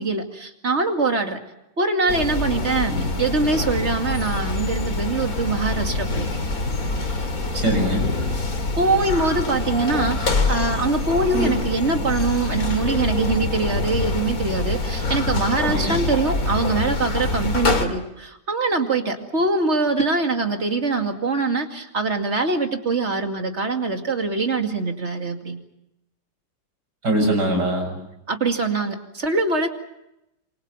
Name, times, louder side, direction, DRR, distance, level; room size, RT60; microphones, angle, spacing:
voice 1, 0.0-1.4 1.8-2.9 3.2-6.3 8.8-25.6 28.3-29.7, right 3 dB, 40° right, 4 dB, 2.6 m, -23 dB
sound 1, 2.1-17.9, left 2 dB, 60° left, 3.0 m, -25 dB
voice 2, 7.6-8.0 15.6-16.0 27.0-28.0, right 1 dB, 90° right, 4 dB, 7.1 m, -22 dB
27.5 x 25.5 x 5.8 m, 0.86 s
omnidirectional pair, 1.8 m